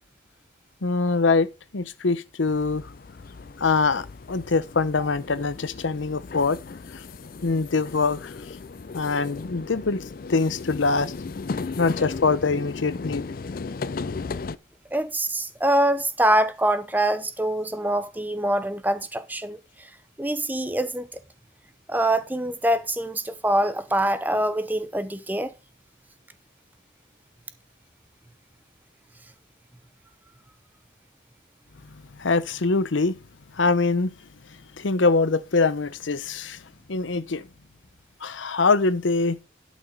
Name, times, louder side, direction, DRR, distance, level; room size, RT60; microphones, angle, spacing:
voice 1, 0.8-2.9 3.6-6.6 6.9-7.0 7.4-8.3 8.9-10.0 10.3-11.2 11.8-13.2 32.2-33.2 33.6-34.1 34.8-36.6 36.9-37.4 38.2-39.4, left 4 dB, 85° left, 0.8 m, -23 dB
sound 1, 2.5-14.6, left 4 dB, 50° left, 0.4 m, -36 dB
voice 2, 14.9-19.6 20.2-21.1 21.9-25.5, right 1 dB, 10° right, 0.7 m, -24 dB
12.0 x 6.1 x 4.6 m
head